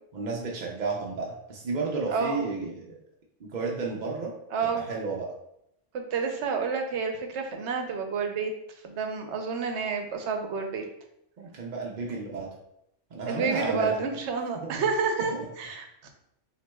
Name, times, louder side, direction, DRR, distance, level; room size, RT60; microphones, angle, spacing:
voice 1, 0.1-3.0 3.4-4.3 4.7-5.3 11.4-12.5 13.1-14.0 14.5-14.9 15.3-15.4, right 3 dB, 50° right, -2 dB, 0.6 m, -32 dB
voice 2, 2.1-2.4 4.5-4.9 5.9-8.5 8.8-10.8 13.3-16.1, right 5 dB, 70° right, 4 dB, 0.9 m, -29 dB
5.9 x 2.9 x 2.2 m, 0.79 s
omnidirectional pair, 1.2 m